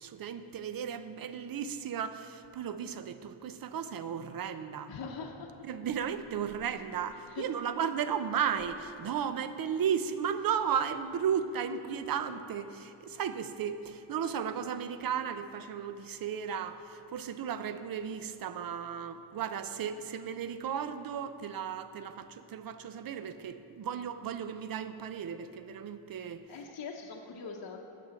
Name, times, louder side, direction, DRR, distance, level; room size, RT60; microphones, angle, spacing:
voice 1, 0.0-4.9 5.6-26.4, right 8 dB, 45° right, 11 dB, 0.5 m, -35 dB
voice 2, 4.9-5.5 7.3-7.5 26.5-27.9, left 5 dB, 50° left, -1 dB, 0.9 m, -42 dB
8.5 x 7.0 x 7.6 m, 2.9 s
wide cardioid pair, 130°, 50 cm